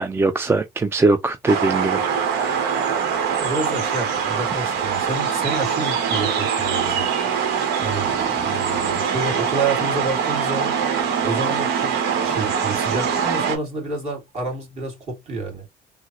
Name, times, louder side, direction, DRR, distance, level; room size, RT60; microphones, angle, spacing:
voice 1, 0.0-3.4, right 2 dB, 15° right, 0.3 m, -22 dB
sound 1, 1.5-13.6, right 7 dB, 85° right, 1.0 m, -23 dB
voice 2, 3.4-7.4 7.8-10.8 11.2-15.7, right 3 dB, 40° right, 2.4 m, -29 dB
3.8 x 2.1 x 2.9 m
cardioid pair, 110°, 17 cm